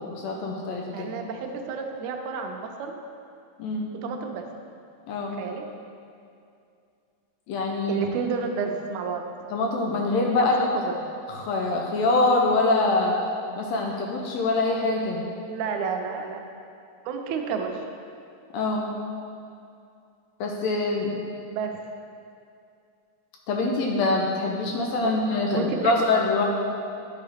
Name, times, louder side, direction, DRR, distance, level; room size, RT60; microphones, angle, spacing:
voice 1, 0.0-1.1 3.6-3.9 5.1-5.4 7.5-8.0 9.5-10.6 11.3-13.2 13.6-15.3 18.5-19.0 20.4-21.2 23.5-26.4, left 2 dB, 80° left, 0 dB, 1.7 m, -24 dB
voice 2, 0.9-2.9 4.0-4.4 5.4-5.7 7.9-9.2 10.4-11.0 15.4-16.4 17.1-17.8 21.5-21.8 25.0-25.1 25.5-26.0, right 5 dB, 85° right, 4 dB, 2.0 m, -30 dB
10.5 x 4.6 x 3.4 m, 2.4 s
omnidirectional pair, 3.4 m